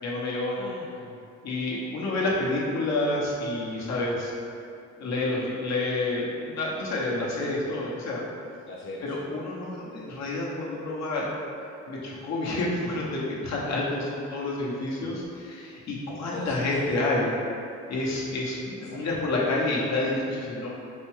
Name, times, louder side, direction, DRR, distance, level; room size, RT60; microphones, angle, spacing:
voice 1, 0.0-0.5 1.4-4.3 5.0-8.2 9.0-11.3 11.9-17.3 17.9-20.7, left 2 dB, 60° left, -5 dB, 0.9 m, -29 dB
voice 2, 0.5-1.2 3.7-4.0 8.7-9.3 15.0-15.1 16.3-16.8 18.8-19.3, left 3 dB, 40° left, -4 dB, 0.4 m, -41 dB
4.2 x 2.2 x 3.1 m, 2.6 s
cardioid pair, 90°, 30 cm